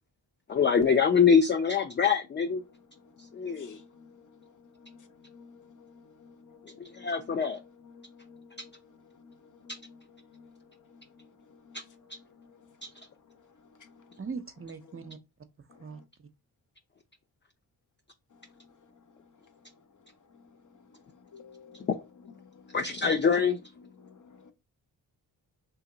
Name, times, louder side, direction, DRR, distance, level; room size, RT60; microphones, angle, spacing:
voice 1, 0.5-2.6 3.3-3.8 6.8-7.6 11.7-11.8 12.8-12.9 21.9-22.0 22.7-23.6, left 6 dB, 30° left, 0.4 m, -24 dB
voice 2, 3.2-4.3 4.8-5.0 5.2-7.1 7.9-8.7 9.2-9.4 9.6-10.0 10.3-10.5 11.2-11.3 11.7-11.8 21.3-21.9 22.4-22.8 24.0-24.5, left 5 dB, 50° left, 0.8 m, -53 dB
voice 3, 14.2-15.2 15.8-16.0 23.0-23.2, right 5 dB, 35° right, 0.6 m, -39 dB
2.9 x 2.8 x 3.8 m
supercardioid pair, 45°, 40 cm